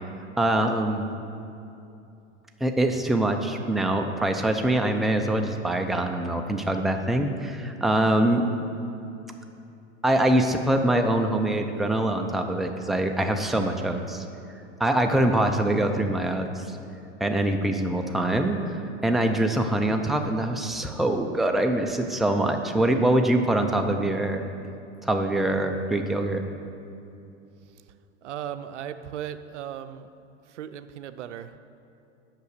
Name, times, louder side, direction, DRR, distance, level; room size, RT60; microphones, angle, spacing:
voice 1, 0.4-1.1 2.6-8.6 10.0-14.2 14.8-16.5 17.2-18.6 19.0-24.4 25.0-26.4, right 1 dB, ahead, 4 dB, 0.5 m, -24 dB
voice 2, 28.2-30.1 30.5-31.5, right 10 dB, 85° right, 11 dB, 0.5 m, -36 dB
8.2 x 6.0 x 6.6 m, 2.7 s
hypercardioid pair, 100°, 35 cm